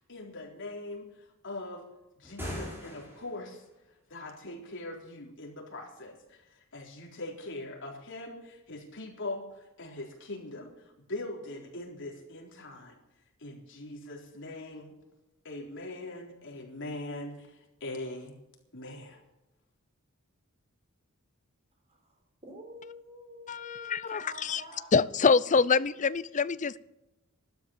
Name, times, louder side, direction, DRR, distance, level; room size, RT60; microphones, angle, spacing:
voice 1, 0.1-1.1 1.4-1.8 2.2-3.6 4.1-6.5 6.7-10.7 11.1-13.0 13.4-14.9 15.4-18.4 18.7-19.2, left 2 dB, 60° left, 0 dB, 4.0 m, -41 dB
sound 1, 2.2-3.5, equal, 10° right, 6.0 m, -40 dB
voice 2, 21.9-24.9, left 1 dB, 30° right, 3 dB, 4.3 m, -48 dB
voice 3, 23.5-24.2 24.5-24.6 24.9-26.8, left 5 dB, 35° left, 17 dB, 0.5 m, -25 dB
13.5 x 12.5 x 7.2 m, 0.96 s
head